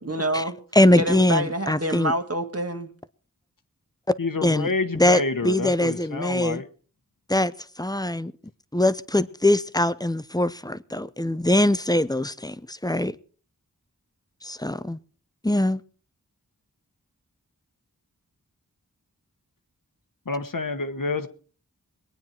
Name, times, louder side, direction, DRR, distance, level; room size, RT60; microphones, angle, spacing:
voice 1, 0.0-0.6 0.9-2.9, right 1 dB, 40° right, 1.8 m, -27 dB
voice 2, 0.7-2.1 4.4-4.7 5.0-6.6 7.3-7.5 7.8-8.3 8.7-13.2 14.4-15.0 15.4-15.8, left 1 dB, 10° left, 0.6 m, -22 dB
voice 3, 4.2-6.7 20.3-21.3, left 3 dB, 65° left, 1.2 m, -28 dB
22.5 x 9.3 x 4.5 m
wide cardioid pair, 40°, 36 cm